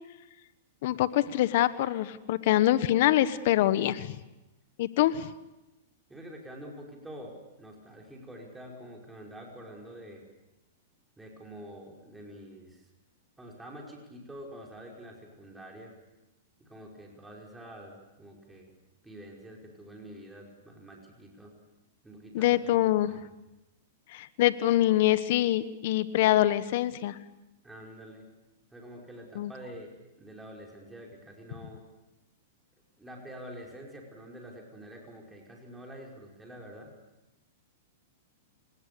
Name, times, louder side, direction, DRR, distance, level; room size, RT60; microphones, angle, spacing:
voice 1, 0.8-4.2 4.8-5.3 22.3-23.1 24.1-27.2 29.3-29.5, left 14 dB, 60° left, 14 dB, 1.2 m, -25 dB
voice 2, 6.1-10.3 11.2-12.9 13.4-15.9 16.6-18.7 19.0-21.5 22.0-23.2 27.6-28.3 28.7-31.8 33.0-36.9, equal, 5° right, -1 dB, 5.2 m, -47 dB
29.0 x 19.5 x 6.9 m, 0.97 s
hypercardioid pair, 125°, 0 cm